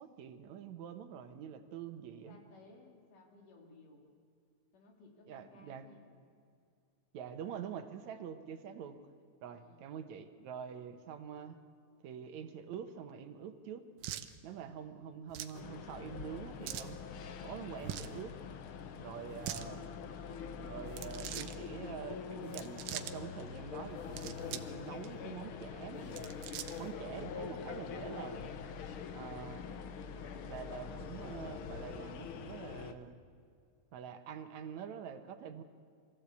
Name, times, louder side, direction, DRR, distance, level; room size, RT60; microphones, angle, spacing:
voice 1, 0.0-2.4 5.3-5.8 7.1-9.0 9.4-11.6 12.0-13.8 14.4-17.0 17.4-18.3 19.0-20.0 20.6-26.3 26.8-28.5 29.1-29.7 30.5-33.2 33.9-35.6, right 8 dB, 70° right, 9 dB, 2.2 m, -46 dB
voice 2, 2.3-4.1 4.7-6.2 9.5-9.8, left 3 dB, 85° left, 2 dB, 4.2 m, -60 dB
sound 1, 14.0-14.3 15.3-15.6 16.6-16.9 17.8-18.2 19.3-19.7 20.9-21.6 22.4-23.1 24.0-24.7 25.0-25.1 26.0-26.9, right 12 dB, 85° right, 2.4 m, -43 dB
sound 2, 15.5-32.9, left 6 dB, 70° left, 1.3 m, -44 dB
23.0 x 15.0 x 8.3 m, 2.3 s
omnidirectional pair, 3.6 m